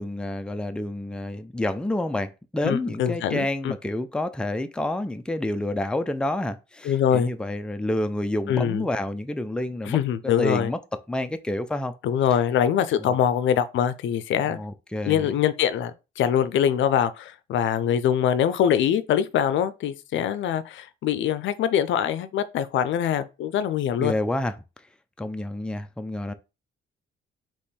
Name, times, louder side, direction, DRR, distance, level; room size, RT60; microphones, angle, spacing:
voice 1, 0.0-10.8 11.1-12.0 13.0-13.1 14.4-15.3 24.0-24.5 25.2-26.3, left 1 dB, 5° left, 0.5 m, -29 dB
voice 2, 2.6-3.7 6.8-7.3 8.5-8.9 9.9-10.7 12.0-14.6 15.0-24.1, left 9 dB, 75° left, 0.5 m, -23 dB
3.5 x 3.0 x 4.2 m
cardioid pair, 90°, 20 cm